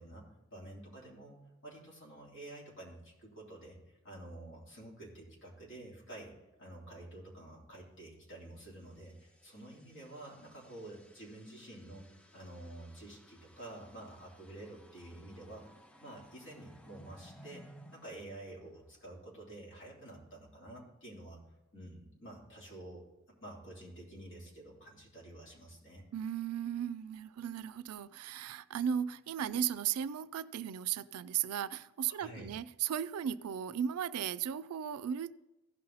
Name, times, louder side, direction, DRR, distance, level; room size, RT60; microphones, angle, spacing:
voice 1, 0.0-1.4 1.6-3.8 4.0-6.3 6.6-12.1 12.3-17.6 17.9-21.4 21.7-23.0 23.4-26.0 32.1-32.5, right 1 dB, 55° left, 3.2 m, -49 dB
sound 1, 8.6-19.3, equal, 5° left, 0.4 m, -60 dB
voice 2, 26.1-35.4, right 9 dB, 75° right, 0.4 m, -36 dB
16.0 x 5.5 x 4.0 m
head